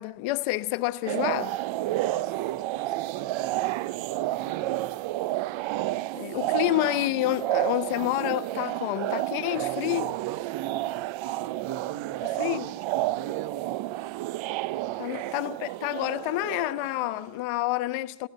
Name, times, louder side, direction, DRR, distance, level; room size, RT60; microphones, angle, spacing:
voice 1, 0.0-1.6 6.1-10.1 12.4-12.7 15.0-18.3, left 17 dB, 85° left, 1.2 m, -28 dB
sound 1, 1.1-17.2, right 16 dB, 70° right, 0.8 m, -31 dB
voice 2, 1.9-5.0 6.3-6.4 9.5-13.8 14.7-15.1, right 9 dB, 45° right, 1.2 m, -42 dB
30.0 x 15.0 x 8.1 m
cardioid pair, 90°, 49 cm